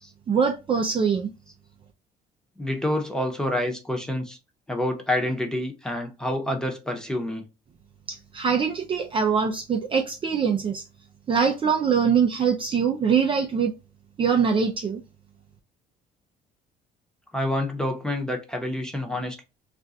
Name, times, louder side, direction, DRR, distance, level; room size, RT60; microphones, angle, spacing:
voice 1, 0.3-1.3 8.1-10.8 11.3-13.7 14.2-15.0, right 6 dB, 30° right, 0.4 m, -23 dB
voice 2, 2.6-4.4 4.7-7.5 17.3-19.4, left 1 dB, 5° left, 0.8 m, -28 dB
2.5 x 2.3 x 3.9 m
cardioid pair, 110°, 17 cm